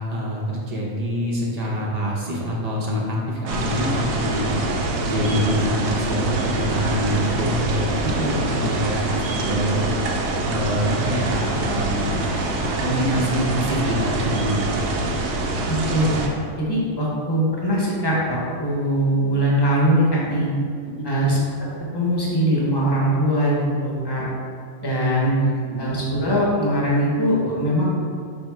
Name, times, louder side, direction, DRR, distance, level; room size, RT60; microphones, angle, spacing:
voice 1, 0.0-4.5 4.9-9.0 9.3-9.9 10.4-12.2 12.8-14.9 21.0-21.1 25.7-25.8, equal, 45° right, -3 dB, 0.5 m, -25 dB
sound 1, 3.5-16.3, right 2 dB, 90° right, 1.0 m, -25 dB
voice 2, 15.7-16.1 16.6-20.5 21.0-21.4 21.9-24.2 24.8-25.4 25.8-27.8, equal, 20° left, -5 dB, 0.8 m, -21 dB
4.2 x 2.7 x 4.6 m, 2.2 s
omnidirectional pair, 1.4 m